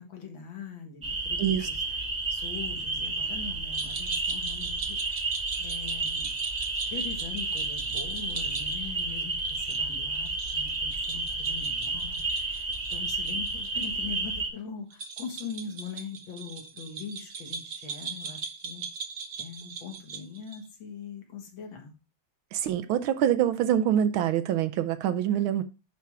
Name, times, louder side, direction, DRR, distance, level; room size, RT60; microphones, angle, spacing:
voice 1, 0.0-2.0 2.3-6.3 6.9-18.9 19.4-21.9 25.3-25.5, left 6 dB, 65° left, 2.2 m, -42 dB
sound 1, 1.0-14.5, right 3 dB, 25° right, 1.0 m, -31 dB
voice 2, 1.4-1.7 22.5-25.6, right 10 dB, 75° right, 1.4 m, -25 dB
sound 2, 3.7-13.9 14.1-14.2 14.9-20.7, right 6 dB, 55° right, 1.3 m, -40 dB
10.5 x 3.5 x 4.7 m
omnidirectional pair, 2.4 m